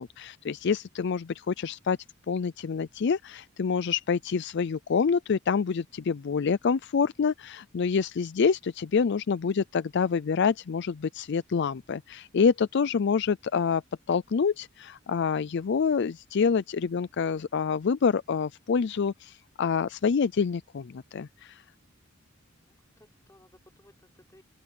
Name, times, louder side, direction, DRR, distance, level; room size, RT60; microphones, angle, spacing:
voice 1, 0.0-2.0 2.3-13.8 14.1-21.6, left 5 dB, 60° left, 0.4 m, -27 dB
voice 2, 22.5-24.4, left 1 dB, 15° left, 5.6 m, -60 dB
head